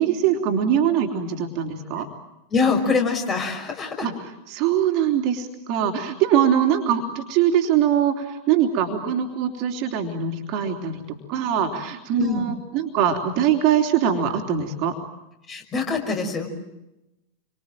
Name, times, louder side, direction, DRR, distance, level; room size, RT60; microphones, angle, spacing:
voice 1, 0.0-2.1 4.0-4.1 4.5-14.9, right 9 dB, 40° right, 3 dB, 3.4 m, -22 dB
voice 2, 2.5-4.1 12.2-12.5 15.5-16.5, left 4 dB, 25° left, 3 dB, 5.9 m, -24 dB
29.5 x 25.0 x 7.6 m, 0.95 s
figure-of-eight pair, 90°, 0 cm